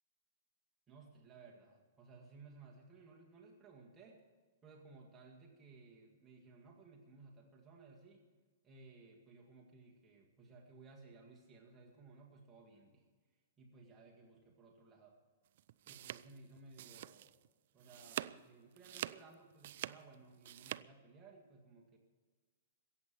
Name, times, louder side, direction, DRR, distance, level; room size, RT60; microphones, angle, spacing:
voice 1, 0.9-4.2 4.6-8.3 8.6-13.1 13.6-15.2 15.9-17.4 17.7-22.0, right 3 dB, 15° right, -2 dB, 1.9 m, -59 dB
sound 1, 15.6-17.5 17.8-18.4 18.8-20.8, right 13 dB, 55° right, 0.4 m, -45 dB
14.5 x 8.7 x 8.6 m, 1.4 s
hypercardioid pair, 155°, 0 cm